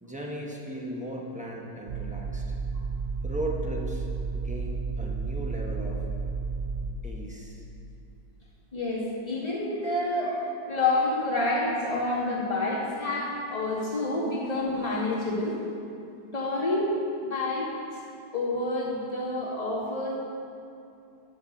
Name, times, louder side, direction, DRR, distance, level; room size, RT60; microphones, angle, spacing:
voice 1, 0.0-2.5 3.2-4.1 4.3-6.1 7.0-7.6, right 1 dB, 5° right, -2 dB, 0.7 m, -37 dB
sound 1, 1.9-6.9, right 4 dB, 80° right, 0.5 m, -32 dB
voice 2, 8.7-15.6 16.3-17.0 17.3-17.7 18.3-20.1, left 2 dB, 20° left, -9 dB, 2.3 m, -28 dB
10.0 x 5.8 x 6.6 m, 2.6 s
omnidirectional pair, 1.9 m